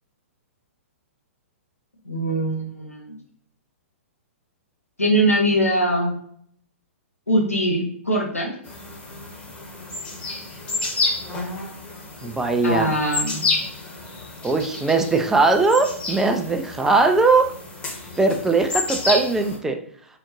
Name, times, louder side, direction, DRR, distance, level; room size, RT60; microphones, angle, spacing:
voice 1, 2.0-3.1 5.0-6.1 7.3-8.5 12.6-13.5, right 1 dB, 90° left, -2 dB, 1.5 m, -22 dB
sound 1, 8.6-19.6, left 3 dB, 15° left, 1.0 m, -30 dB
voice 2, 12.2-12.9 14.4-17.5 18.2-19.8, right 3 dB, 5° right, 5 dB, 0.4 m, -20 dB
4.1 x 3.8 x 3.0 m, 0.63 s
figure-of-eight pair, 115°, 7 cm